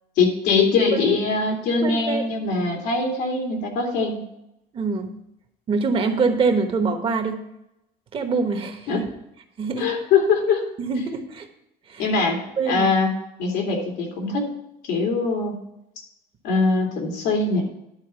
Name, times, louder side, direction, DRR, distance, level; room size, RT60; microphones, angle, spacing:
voice 1, 0.2-4.2 8.9-9.0 9.8-10.6 12.0-14.5 14.8-15.6 16.4-17.6, left 4 dB, 80° left, 1 dB, 2.6 m, -22 dB
voice 2, 1.8-2.2 4.7-5.1 5.7-7.4 8.1-9.0 9.6-9.9 10.8-11.5 11.9-12.1 12.6-12.9, right 4 dB, 30° right, 6 dB, 1.1 m, -24 dB
11.0 x 4.2 x 6.8 m, 0.83 s
cardioid pair, 150°, 17 cm